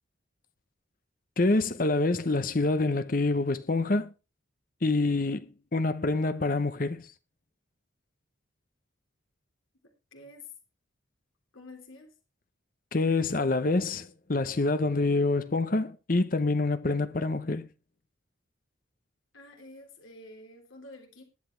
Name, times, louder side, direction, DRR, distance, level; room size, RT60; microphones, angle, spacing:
voice 1, 1.4-4.1 4.8-7.1 12.9-17.7, left 2 dB, 45° left, 0.8 m, -26 dB
voice 2, 10.1-10.5 11.5-12.1 19.3-21.2, left 2 dB, 90° left, 3.4 m, -48 dB
21.0 x 8.3 x 3.3 m
head